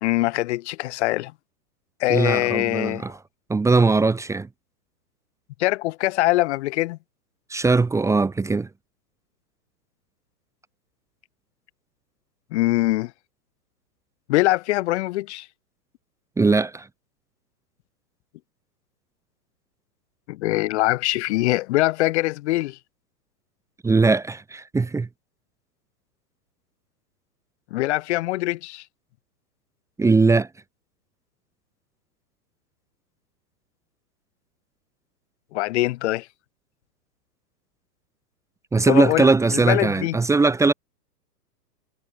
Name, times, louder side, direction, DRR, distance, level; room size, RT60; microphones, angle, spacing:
voice 1, 0.0-1.3 2.0-3.1 5.6-7.0 12.5-13.1 14.3-15.5 20.3-22.8 27.7-28.8 35.5-36.3 38.9-40.2, left 18 dB, 45° left, 1.9 m, -23 dB
voice 2, 2.1-3.1 3.5-4.5 7.5-8.7 16.4-16.9 23.8-25.1 30.0-30.5 38.7-40.7, right 3 dB, 5° right, 1.7 m, -20 dB
hypercardioid pair, 145°, 49 cm